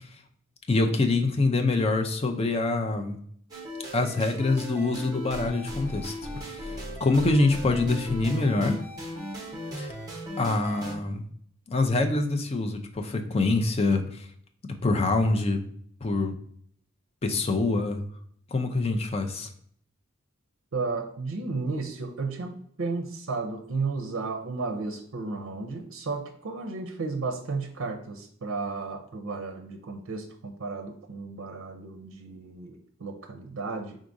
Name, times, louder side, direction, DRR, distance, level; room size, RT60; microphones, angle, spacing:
voice 1, 0.7-3.2 3.9-6.7 7.0-8.8 9.8-9.9 10.4-11.2 11.7-14.2 14.8-15.6 16.0-16.3 17.2-18.0 18.5-19.5, left 2 dB, 30° left, 5 dB, 0.4 m, -25 dB
sound 1, 3.5-11.0, equal, 20° right, 0.9 m, -37 dB
voice 2, 20.7-34.0, right 3 dB, 75° right, 4 dB, 0.5 m, -33 dB
4.7 x 3.7 x 2.6 m, 0.63 s
head